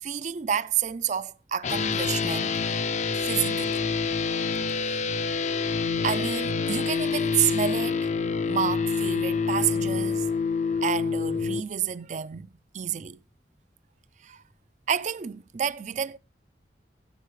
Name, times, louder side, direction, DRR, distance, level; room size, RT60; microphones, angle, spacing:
voice 1, 0.0-2.5 3.2-3.8 4.8-5.0 6.0-8.1 8.5-10.3 10.8-12.5 12.7-13.2 14.2-14.4 14.9-16.2, right 8 dB, 45° right, 0.4 m, -29 dB
sound 1, 1.6-11.6, left 5 dB, 40° left, 0.5 m, -27 dB
14.5 x 8.3 x 3.1 m
head